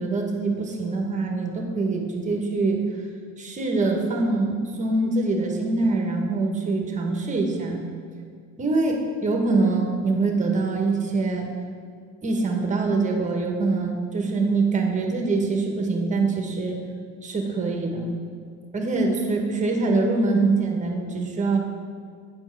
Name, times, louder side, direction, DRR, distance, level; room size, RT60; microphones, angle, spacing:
voice 1, 0.0-2.8 3.4-7.8 8.6-11.5 12.2-16.8 17.2-18.1 18.7-21.6, right 3 dB, 20° right, 2 dB, 1.1 m, -24 dB
9.0 x 4.5 x 6.0 m, 2.1 s
cardioid pair, 135°, 33 cm